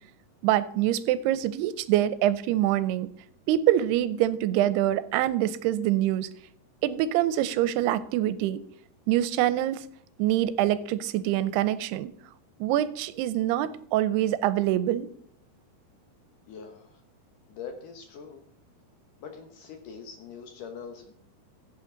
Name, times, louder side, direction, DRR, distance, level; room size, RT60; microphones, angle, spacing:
voice 1, 0.4-3.1 3.5-6.3 6.8-8.6 9.1-9.9 10.2-12.1 12.6-15.1, right 13 dB, 85° right, 15 dB, 2.6 m, -25 dB
voice 2, 16.5-17.0 17.5-18.4 19.2-21.1, left 6 dB, 65° left, 5 dB, 2.2 m, -43 dB
16.0 x 8.2 x 3.8 m, 0.65 s
omnidirectional pair, 4.7 m